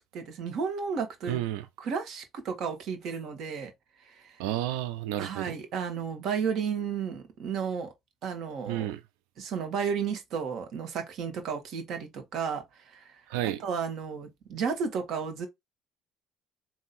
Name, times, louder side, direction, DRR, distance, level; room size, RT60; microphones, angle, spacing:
voice 1, 0.1-1.4 1.8-3.7 4.1-4.4 5.2-7.9 8.2-8.9 9.4-13.2 13.6-15.5, right 6 dB, 65° right, 1.5 m, -33 dB
voice 2, 1.3-1.7 4.4-5.5 8.7-9.0 13.3-13.6, right 13 dB, 85° right, 0.4 m, -31 dB
3.7 x 2.8 x 4.2 m
supercardioid pair, 75°, 0 cm